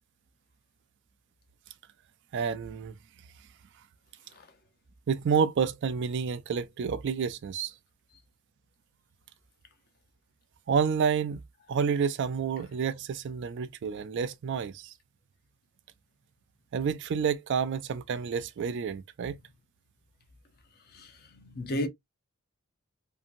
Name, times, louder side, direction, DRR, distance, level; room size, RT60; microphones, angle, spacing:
voice 1, 2.3-2.9 5.1-7.7 10.7-11.4 11.7-14.9 16.7-19.4, right 6 dB, 55° right, 0.3 m, -29 dB
voice 2, 20.9-21.9, left 1 dB, 45° left, 0.7 m, -34 dB
2.7 x 2.6 x 2.5 m
head